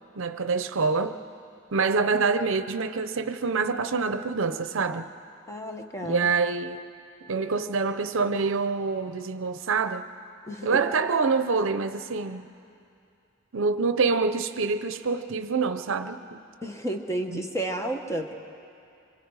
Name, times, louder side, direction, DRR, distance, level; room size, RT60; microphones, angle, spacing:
voice 1, 0.2-1.2 1.7-5.1 6.0-6.8 7.3-10.0 10.6-12.5 13.5-16.4 17.3-17.4, right 4 dB, 65° right, 10 dB, 0.7 m, -26 dB
voice 2, 5.5-6.3 10.5-10.8 16.6-18.3, right 1 dB, 15° left, 4 dB, 1.3 m, -31 dB
26.0 x 24.5 x 4.8 m, 2.6 s
head